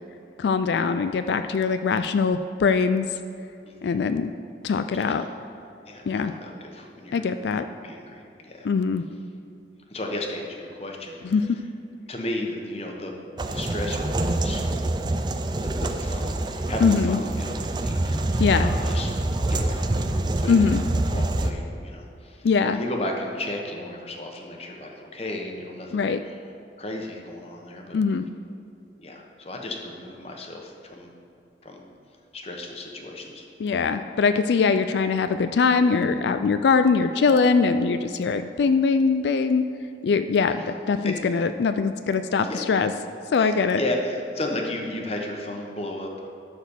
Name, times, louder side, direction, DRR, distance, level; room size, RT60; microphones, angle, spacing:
voice 1, 0.4-3.1 3.8-4.3 4.6-5.3 6.1-6.3 7.1-7.6 8.6-9.0 11.2-11.4 16.8-17.2 18.4-18.7 20.5-20.8 22.4-22.8 25.9-26.2 27.9-28.2 33.6-39.6 40.0-40.6 40.9-42.9 43.3-43.8, left 5 dB, 75° left, 10 dB, 0.3 m, -22 dB
voice 2, 3.6-4.0 4.9-5.3 5.9-7.2 7.5-8.7 9.9-11.6 12.1-13.2 13.5-14.6 15.6-19.1 19.4-20.0 20.4-20.8 21.1-22.5 22.7-26.3 26.8-28.0 29.0-31.1 31.6-31.8 32.3-33.5 40.5-40.7 41.0-41.2 42.4-42.6 43.3-46.3, left 1 dB, 35° left, 1 dB, 1.1 m, -34 dB
sound 1, 13.4-21.5, right 2 dB, 25° right, 0.4 m, -26 dB
12.5 x 4.2 x 7.0 m, 2.7 s
head